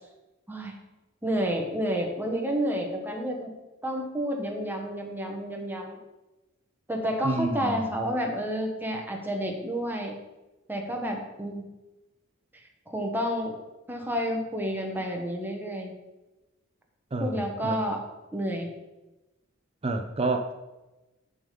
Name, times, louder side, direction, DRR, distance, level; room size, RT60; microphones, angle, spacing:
voice 1, 1.2-3.5 3.8-6.0 6.9-10.1 10.7-11.6 12.9-13.6 13.9-15.9 17.2-18.0 18.3-18.7, equal, 10° right, 1 dB, 1.2 m, -30 dB
voice 2, 7.2-7.8 17.1-17.8 19.8-20.5, right 2 dB, 30° right, 5 dB, 0.5 m, -29 dB
7.1 x 5.1 x 6.9 m, 1.1 s
head